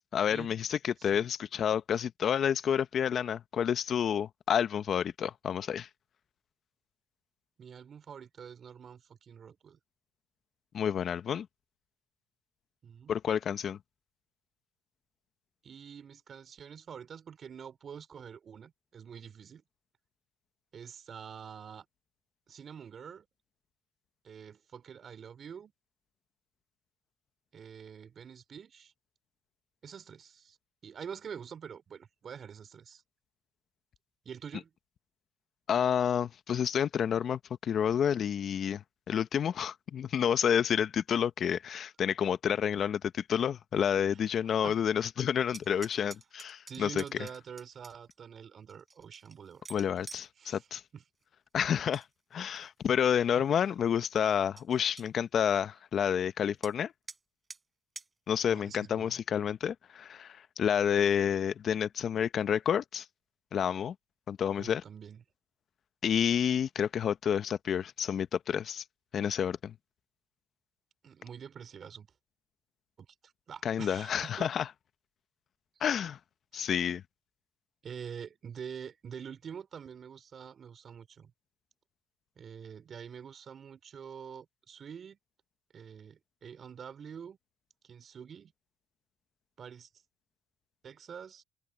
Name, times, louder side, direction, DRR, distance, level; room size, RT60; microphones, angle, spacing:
voice 1, 0.0-5.9 10.7-11.5 13.1-13.8 35.7-38.8 39.1-47.0 49.7-50.8 51.5-52.0 52.3-56.9 58.3-63.0 63.5-63.9 64.3-64.8 66.0-68.8 69.1-69.7 73.6-74.7 75.8-76.2 76.5-77.0, left 8 dB, 55° left, 1.1 m, -29 dB
voice 2, 7.6-9.8 12.8-13.1 15.6-19.6 20.7-21.9 22.5-23.3 24.2-25.7 27.5-28.9 29.8-30.6 30.8-33.0 34.2-34.7 44.1-44.8 46.7-49.6 50.4-50.7 50.9-51.0 53.3-53.4 58.4-59.2 64.5-65.2 71.0-72.1 73.0-74.5 76.5-76.6 77.8-81.3 82.4-85.2 85.7-87.4 87.8-88.5 89.6-89.9 90.8-91.4, right 7 dB, 50° right, 4.1 m, -46 dB
sound 1, 45.5-48.1 48.7-50.3 51.6-52.1 52.4-52.9 53.4-53.5 53.9-54.0 54.3-54.4 54.6-55.1 56.6-56.7 57.1-57.2 57.5-57.6 58.0-58.1, right 4 dB, 25° right, 7.1 m, -49 dB
open air
supercardioid pair, 75°, 0 cm